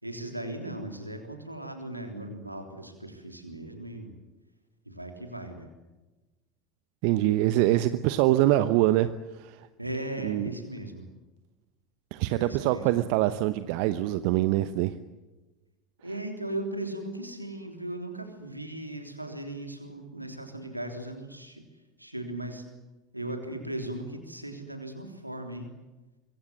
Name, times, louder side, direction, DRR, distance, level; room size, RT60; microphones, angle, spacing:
voice 1, 0.0-4.1 4.9-5.7 9.8-11.1 12.3-12.9 16.0-21.6 22.0-22.7 23.1-25.7, right 1 dB, 90° right, 5 dB, 3.5 m, -37 dB
voice 2, 7.0-9.1 9.4-9.6 10.2-10.5 12.1-14.9, right 15 dB, 55° right, 13 dB, 0.9 m, -24 dB
25.5 x 23.5 x 7.8 m, 1.1 s
figure-of-eight pair, 70°, 0 cm